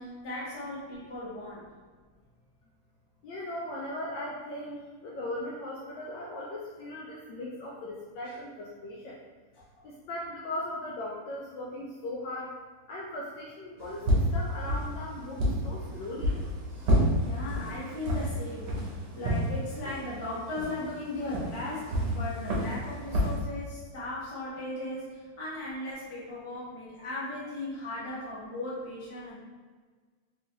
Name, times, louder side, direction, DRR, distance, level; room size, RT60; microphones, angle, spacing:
voice 1, 0.0-1.7 16.7-29.4, left 2 dB, 25° left, -9 dB, 0.6 m, -37 dB
voice 2, 3.2-9.2 9.8-12.6 12.9-16.4, left 1 dB, 75° left, -4 dB, 1.1 m, -38 dB
sound 1, 13.8-23.3, equal, 65° right, 1.2 m, -30 dB
3.8 x 3.0 x 2.7 m, 1.5 s
omnidirectional pair, 2.4 m